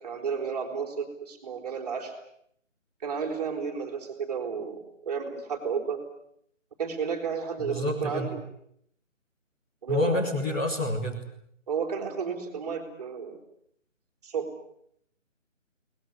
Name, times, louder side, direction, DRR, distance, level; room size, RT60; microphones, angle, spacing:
voice 1, 0.0-2.1 3.0-4.8 5.1-6.0 6.8-8.3 9.8-10.3 11.7-13.3 14.2-14.5, right 6 dB, 30° right, 2 dB, 4.4 m, -32 dB
voice 2, 7.6-8.3 9.9-11.2, left 1 dB, 10° left, -4 dB, 1.4 m, -28 dB
23.5 x 20.0 x 9.7 m, 0.71 s
figure-of-eight pair, 155°, 38 cm